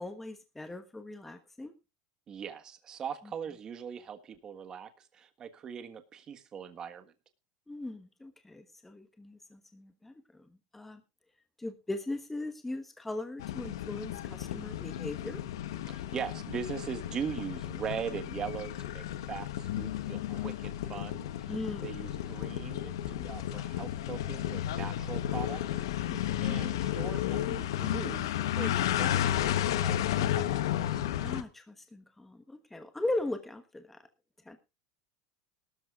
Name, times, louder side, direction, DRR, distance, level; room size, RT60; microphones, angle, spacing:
voice 1, 0.0-1.7 7.7-10.1 10.7-11.0 11.6-15.4 21.5-22.0 31.2-34.0 34.5-34.6, left 2 dB, 10° left, 8 dB, 1.2 m, -39 dB
voice 2, 2.3-7.1 15.9-21.5 21.8-31.0, right 7 dB, 30° right, 8 dB, 1.4 m, -41 dB
sound 1, 13.4-31.4, left 12 dB, 85° left, 1.1 m, -33 dB
18.0 x 13.0 x 2.4 m, 0.28 s
supercardioid pair, 125°, 2 cm